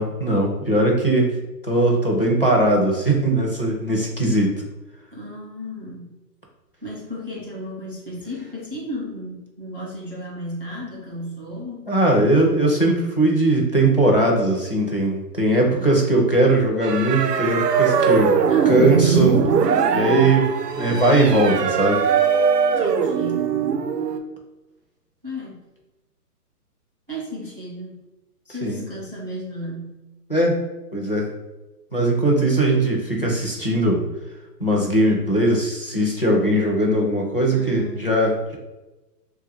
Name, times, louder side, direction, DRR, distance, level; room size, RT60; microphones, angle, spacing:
voice 1, 0.0-1.3 1.6-4.5 11.9-18.4 18.7-19.3 19.9-20.5 20.8-22.0 28.6-28.8 30.3-31.3 31.9-34.1 34.6-38.6, right 1 dB, 40° left, -2 dB, 0.4 m, -19 dB
voice 2, 5.1-6.1 6.8-11.9 15.5-16.1 18.5-19.3 19.8-20.3 22.8-23.5 25.2-25.6 27.1-28.0 28.5-30.0 37.5-38.1, equal, 35° right, -5 dB, 0.5 m, -33 dB
sound 1, 16.8-24.2, right 6 dB, 85° right, 0.6 m, -21 dB
3.1 x 2.3 x 3.3 m, 1.1 s
hypercardioid pair, 175°, 48 cm